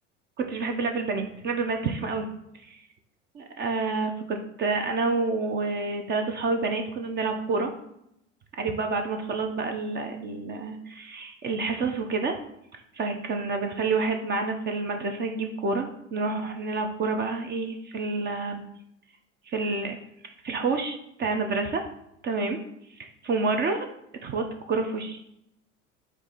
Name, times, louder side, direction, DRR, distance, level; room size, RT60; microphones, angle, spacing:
voice 1, 0.4-2.3 2.7-2.8 3.4-7.7 8.6-12.3 12.9-18.6 19.5-20.0 20.4-21.8 22.2-22.6 22.9-23.9 24.2-25.2, right 3 dB, 30° right, 5 dB, 0.6 m, -28 dB
4.6 x 2.6 x 4.2 m, 0.78 s
figure-of-eight pair, 70°, 37 cm